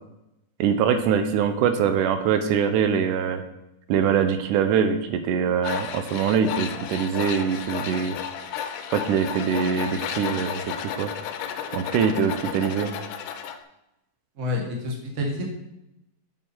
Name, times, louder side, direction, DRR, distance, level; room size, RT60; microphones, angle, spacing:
voice 1, 0.6-3.4 3.9-8.2 8.9-10.6 11.0-11.1 11.7-12.9, right 7 dB, 85° right, 8 dB, 2.2 m, -23 dB
Tools, 5.6-13.6, left 8 dB, 80° left, 2.0 m, -33 dB
voice 2, 14.4-15.4, left 2 dB, 35° right, 0 dB, 1.2 m, -28 dB
8.5 x 7.0 x 4.4 m, 0.90 s
omnidirectional pair, 3.7 m